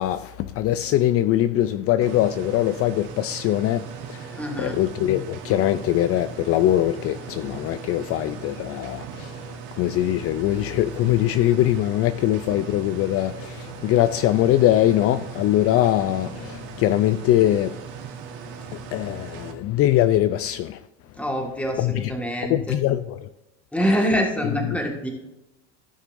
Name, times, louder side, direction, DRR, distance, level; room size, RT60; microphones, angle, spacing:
voice 1, 0.0-17.7 18.7-20.8 21.8-22.2 22.5-23.3 23.8-24.0 24.4-24.8, left 13 dB, 45° left, 0.4 m, -22 dB
sound 1, 2.0-19.5, right 7 dB, 75° right, 1.3 m, -38 dB
voice 2, 4.4-4.8 21.2-22.8 23.7-25.1, equal, 5° left, 1.7 m, -25 dB
15.0 x 6.1 x 2.6 m
supercardioid pair, 115°, 34 cm